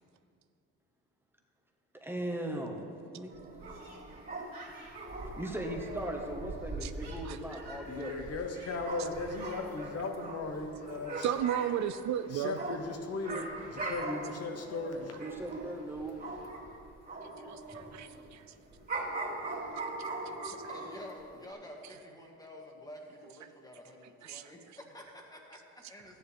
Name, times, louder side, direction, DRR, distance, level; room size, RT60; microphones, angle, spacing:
voice 1, 1.9-3.5 4.8-4.9 5.4-8.1 15.2-16.1, right 1 dB, 5° right, 1.3 m, -38 dB
sound 1, 3.3-16.7 17.1-21.1 21.5-21.6, right 2 dB, 30° right, 2.7 m, -41 dB
voice 2, 7.9-11.3 12.3-15.3, left 3 dB, 55° left, 1.1 m, -37 dB
voice 3, 11.2-12.5 17.5-18.4 20.4-20.5 24.2-24.5, right 10 dB, 65° right, 0.5 m, -34 dB
voice 4, 20.5-26.2, left 1 dB, 10° left, 1.7 m, -49 dB
13.5 x 9.9 x 3.4 m
cardioid pair, 90°, 30 cm